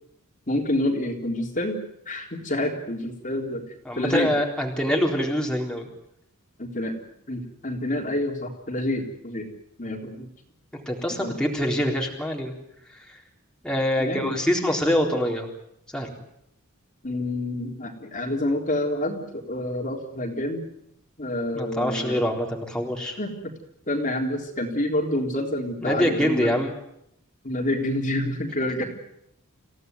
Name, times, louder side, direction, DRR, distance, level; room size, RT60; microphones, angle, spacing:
voice 1, 0.5-3.7 3.9-4.3 6.6-6.9 7.3-9.5 9.8-10.3 11.2-11.3 14.0-14.4 17.0-20.6 21.2-22.2 23.2-23.3 23.9-26.5 27.4-28.8, left 1 dB, 40° left, 1 dB, 3.6 m, -28 dB
voice 2, 3.9-5.9 10.9-12.5 12.9-13.2 13.6-15.5 15.9-16.2 21.5-23.2 25.8-26.7, equal, 5° left, -1 dB, 3.9 m, -25 dB
27.5 x 16.5 x 9.5 m, 0.78 s
head